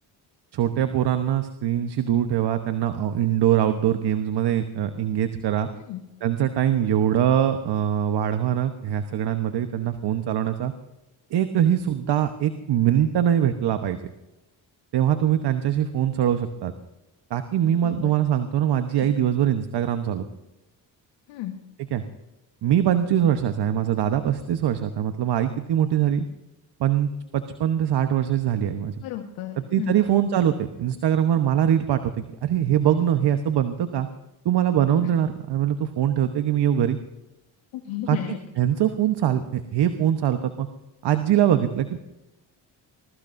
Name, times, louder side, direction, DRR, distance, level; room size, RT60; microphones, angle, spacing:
voice 1, 0.5-5.7 6.2-10.7 11.3-14.0 14.9-16.7 17.3-20.3 21.9-22.0 22.6-26.3 26.8-28.9 29.7-34.1 34.4-37.0 38.1-40.7 41.0-42.0, right 10 dB, 60° right, 8 dB, 1.1 m, -23 dB
voice 2, 29.0-30.0 37.7-38.4, left 12 dB, 85° left, 4 dB, 1.5 m, -33 dB
23.0 x 21.0 x 2.7 m, 0.98 s
supercardioid pair, 70°, 46 cm